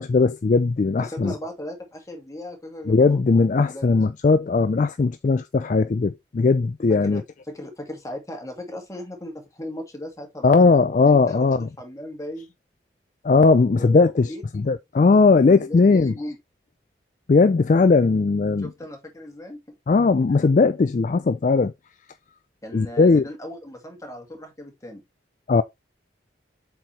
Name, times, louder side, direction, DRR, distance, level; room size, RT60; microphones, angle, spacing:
voice 1, 0.0-1.3 2.9-7.2 10.4-11.7 13.2-16.1 17.3-18.7 19.9-21.7 22.7-23.2 25.5-25.6, left 4 dB, 40° left, 0.3 m, -18 dB
voice 2, 1.0-3.2 3.7-4.0 7.0-10.6 11.1-11.5 11.8-12.5 13.7-14.4 15.6-16.4 18.6-19.6 22.6-25.0, left 1 dB, 15° left, 1.8 m, -37 dB
7.6 x 4.4 x 3.1 m
head